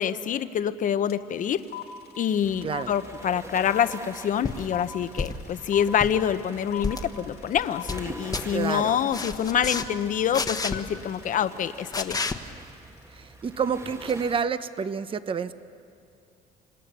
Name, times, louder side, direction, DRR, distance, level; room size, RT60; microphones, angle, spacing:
voice 1, 0.0-1.6 2.2-12.2, left 9 dB, 50° left, 12 dB, 0.9 m, -26 dB
sound 1, 1.1-1.2 1.4-12.6, left 9 dB, 70° left, 2.2 m, -40 dB
sound 2, 2.4-14.4, right 2 dB, 15° right, 1.4 m, -46 dB
sound 3, 4.4-4.6 5.2-5.5 5.9-6.2 6.8-7.1 7.5-8.0 8.3-8.5 9.1-9.9 10.3-10.8 11.9-12.4 14.1-14.2, left 4 dB, 20° left, 1.3 m, -30 dB
voice 2, 8.5-9.0 13.4-15.5, right 6 dB, 30° right, 12 dB, 0.9 m, -28 dB
27.5 x 26.5 x 6.9 m, 2.6 s
cardioid pair, 110°, 17 cm